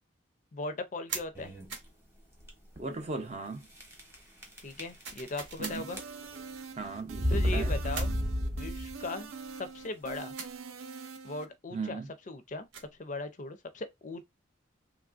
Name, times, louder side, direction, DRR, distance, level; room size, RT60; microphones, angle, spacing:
voice 1, 0.5-1.5 4.6-6.0 7.3-9.3 9.6-10.3 11.2-12.7 13.0-14.2, left 2 dB, 40° left, 0.4 m, -39 dB
sound 1, 1.1-1.3 1.7-1.9 5.0-5.8 7.9-8.2 10.4-10.6 12.5-13.0, right 5 dB, 65° right, 0.8 m, -40 dB
sound 2, 1.3-1.8 2.4-2.5 2.8-2.9 3.8-4.2 4.4-5.6 5.9-6.4 7.1-9.0, left 1 dB, 15° right, 0.9 m, -31 dB
voice 2, 2.8-3.7 5.6-5.8 6.8-7.8 11.7-12.1, right 3 dB, 35° right, 0.5 m, -37 dB
sound 3, 5.6-11.5, right 5 dB, 90° right, 0.4 m, -44 dB
3.1 x 2.4 x 2.4 m
head